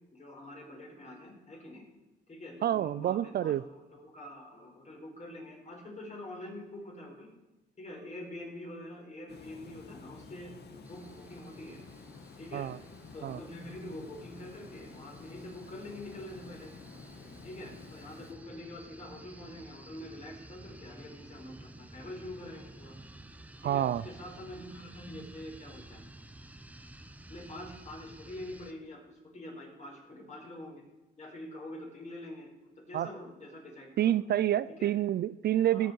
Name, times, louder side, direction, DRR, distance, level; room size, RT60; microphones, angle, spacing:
voice 1, 0.1-1.8 2.3-7.3 7.8-11.8 12.4-12.7 13.1-16.7 17.1-22.9 23.6-26.0 27.3-30.8 31.2-34.2 34.8-34.9 35.7-35.9, left 1 dB, 35° left, 0 dB, 4.3 m, -45 dB
voice 2, 2.6-3.6 12.5-12.8 13.2-13.4 23.6-24.0 32.9-33.1 34.0-35.9, right 11 dB, 55° right, 17 dB, 0.4 m, -28 dB
Water, 9.3-18.3, left 4 dB, 55° left, 1.6 m, -51 dB
sound 1, 10.8-28.7, right 1 dB, 5° right, 0.8 m, -52 dB
17.5 x 7.3 x 4.6 m, 1.1 s
cardioid pair, 90°, 20 cm